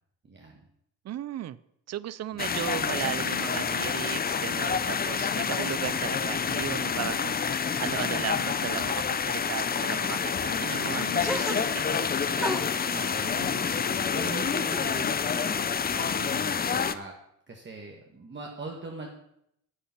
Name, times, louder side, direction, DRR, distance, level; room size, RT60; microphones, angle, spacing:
voice 1, 0.2-0.6 2.3-2.7 12.9-17.1 17.5-19.1, right 3 dB, 30° right, 0 dB, 1.6 m, -41 dB
voice 2, 1.0-1.6 1.9-12.5, right 12 dB, 50° right, 18 dB, 0.5 m, -36 dB
sound 1, 2.4-16.9, left 6 dB, 25° left, 0.5 m, -28 dB
sound 2, 11.3-12.1 12.4-15.1 15.4-16.3, equal, ahead, 1.3 m, -38 dB
10.0 x 8.6 x 5.8 m, 0.74 s
cardioid pair, 125°, 34 cm